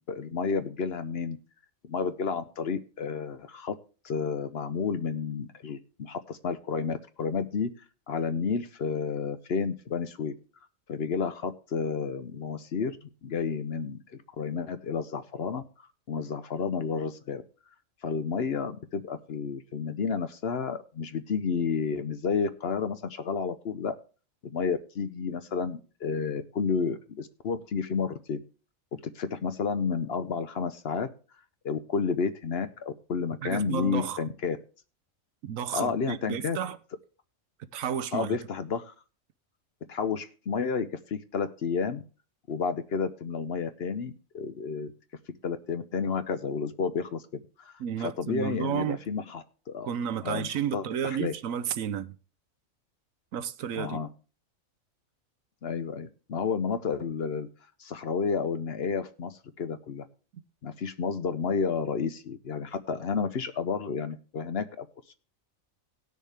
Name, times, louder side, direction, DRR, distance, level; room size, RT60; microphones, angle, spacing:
voice 1, 0.0-1.4 1.8-3.8 4.0-7.7 8.1-10.3 10.9-14.0 14.4-15.6 16.1-17.4 18.0-24.0 24.4-28.4 28.9-31.1 31.6-34.6 35.7-36.6 38.1-38.9 39.9-42.0 42.5-44.9 45.4-47.2 47.6-47.7 48.0-49.9 50.2-51.3 53.7-54.1 55.6-57.5 57.8-60.1 60.6-64.9, left 5 dB, 55° left, 0.9 m, -31 dB
voice 2, 33.4-34.2 35.4-36.8 37.7-38.4 47.8-49.0 49.8-52.2 53.3-54.0, right 9 dB, 80° right, 1.1 m, -32 dB
18.0 x 6.4 x 3.4 m
omnidirectional pair, 1.4 m